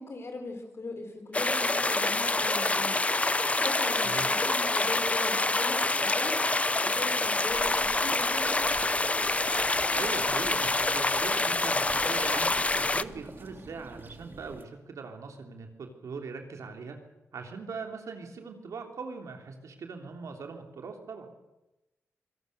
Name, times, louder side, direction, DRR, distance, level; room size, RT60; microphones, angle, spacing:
voice 1, 0.0-6.4 6.8-8.8, left 2 dB, 55° left, 5 dB, 4.6 m, -39 dB
sound 1, 1.3-13.0, left 2 dB, 25° left, 0.7 m, -26 dB
sound 2, 7.5-14.6, right 3 dB, 40° right, 2.6 m, -47 dB
voice 2, 9.9-17.0 17.3-21.3, right 4 dB, 80° right, 4 dB, 3.2 m, -41 dB
25.5 x 18.0 x 6.8 m, 0.97 s
cardioid pair, 65°, 5 cm